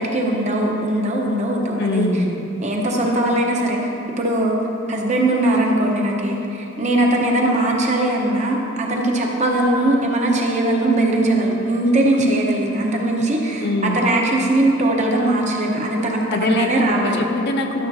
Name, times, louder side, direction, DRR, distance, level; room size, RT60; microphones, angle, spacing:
voice 1, 0.0-2.1 2.6-3.9 4.2-4.6 4.9-17.3, right 1 dB, 35° right, -1 dB, 0.9 m, -20 dB
voice 2, 1.8-2.5 13.6-14.0 16.3-16.7 17.0-17.9, left 2 dB, 55° left, 4 dB, 0.6 m, -23 dB
12.0 x 7.0 x 2.7 m, 2.9 s
head